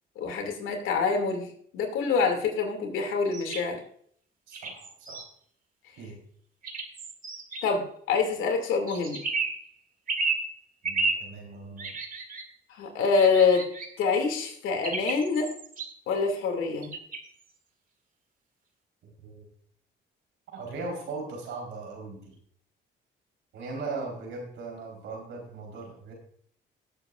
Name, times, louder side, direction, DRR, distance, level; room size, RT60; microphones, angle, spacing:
voice 1, 0.2-3.8 7.6-9.2 12.7-13.7 14.0-15.5 16.1-16.9, left 5 dB, 90° left, 4 dB, 2.5 m, -26 dB
sound 1, 3.3-3.6 4.5-5.3 6.6-7.6 8.9-9.6 10.1-10.4 10.8-11.2 11.8-12.4 13.2-13.9 14.8-15.9 16.8-17.4, right 4 dB, 45° right, 2.1 m, -32 dB
voice 2, 4.5-5.2 6.0-6.2 10.8-11.9 19.0-19.5 20.5-22.4 23.5-26.1, right 3 dB, 85° right, 1 dB, 4.1 m, -39 dB
18.0 x 8.6 x 2.5 m, 0.62 s
cardioid pair, 90°, 20 cm